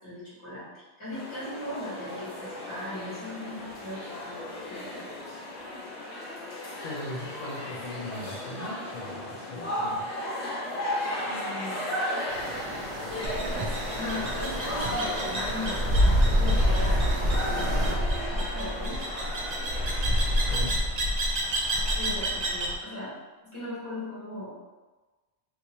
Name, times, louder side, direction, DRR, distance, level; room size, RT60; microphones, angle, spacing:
voice 1, 0.0-4.4 4.7-5.3 11.2-11.9 13.1-19.1 22.0-23.2 23.4-24.5, left 1 dB, 25° left, -10 dB, 1.6 m, -39 dB
sound 1, 1.1-20.7, left 1 dB, 80° left, 1.2 m, -35 dB
voice 2, 6.8-10.1 20.5-20.8, left 1 dB, 50° left, -6 dB, 0.6 m, -39 dB
sound 2, 12.3-17.9, right 2 dB, 90° right, 0.9 m, -38 dB
sound 3, 13.2-22.7, equal, 45° right, 0.6 m, -27 dB
3.4 x 2.7 x 2.9 m, 1.2 s
omnidirectional pair, 1.1 m